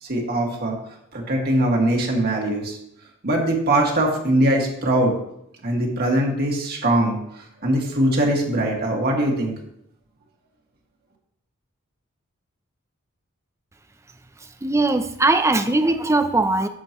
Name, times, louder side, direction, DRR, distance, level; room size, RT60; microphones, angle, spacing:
voice 1, 0.0-0.8 1.1-2.8 3.2-5.1 5.6-9.5, right 1 dB, 45° right, 0 dB, 2.0 m, -21 dB
voice 2, 14.6-16.7, right 2 dB, 15° right, 8 dB, 0.6 m, -20 dB
11.0 x 7.5 x 3.1 m, 0.76 s
head